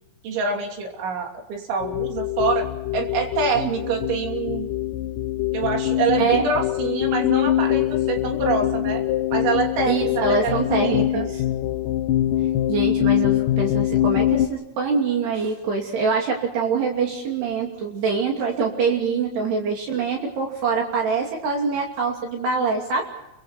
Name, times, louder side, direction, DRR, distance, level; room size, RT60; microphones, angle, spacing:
voice 1, 0.2-2.7 2.9-4.7 5.5-9.0 9.3-11.3, right 5 dB, 85° right, 3 dB, 5.5 m, -26 dB
sound 1, 1.8-14.5, left 13 dB, 85° left, 1.8 m, -23 dB
voice 2, 6.2-6.5 9.9-11.4 12.7-23.1, right 5 dB, 65° right, 1 dB, 4.7 m, -24 dB
29.0 x 24.0 x 4.4 m, 0.90 s
omnidirectional pair, 5.2 m